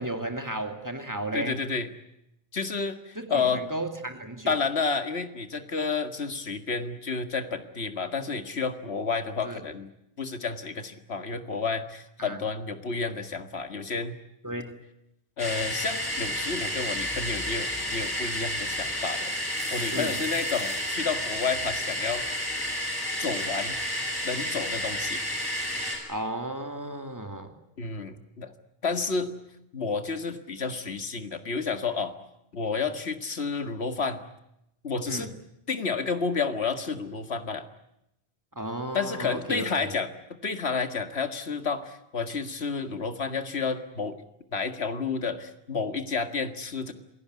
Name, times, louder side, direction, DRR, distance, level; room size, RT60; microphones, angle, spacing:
voice 1, 0.0-1.6 3.2-4.6 9.4-9.6 12.2-12.4 14.4-14.8 19.9-20.2 26.1-27.6 35.1-35.3 38.5-39.7, right 1 dB, 15° right, 6 dB, 2.5 m, -34 dB
voice 2, 1.3-1.9 2.5-3.6 4.5-9.9 10.2-14.2 15.4-22.3 23.2-23.8 24.2-25.2 27.8-28.5 28.8-29.3 29.7-32.2 32.5-34.2 34.8-35.3 35.7-37.7 38.9-44.2 44.5-46.9, left 4 dB, 75° left, 8 dB, 2.1 m, -30 dB
sound 1, 15.4-26.0, left 1 dB, 20° left, 6.7 m, -31 dB
27.0 x 18.0 x 9.5 m, 0.83 s
omnidirectional pair, 1.1 m